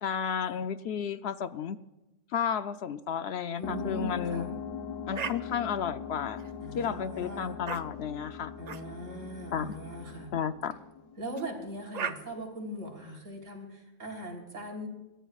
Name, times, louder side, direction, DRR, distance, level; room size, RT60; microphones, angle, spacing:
voice 1, 0.0-1.8 2.3-4.5 5.1-6.4 6.7-8.5 9.5-9.7 10.3-10.8, left 7 dB, 65° left, 11 dB, 0.8 m, -32 dB
sound 1, 3.6-11.8, left 6 dB, 85° left, 1.3 m, -41 dB
voice 2, 3.6-4.6 6.6-7.6 8.6-10.3 11.2-14.9, equal, 85° right, 1 dB, 3.7 m, -40 dB
sound 2, 5.1-5.4 6.3-6.9 7.7-7.8 8.7-8.8 9.7-9.9 11.3-11.5 11.9-12.1, right 6 dB, 45° right, 0.5 m, -36 dB
29.0 x 14.0 x 2.4 m, 1.0 s
omnidirectional pair, 1.3 m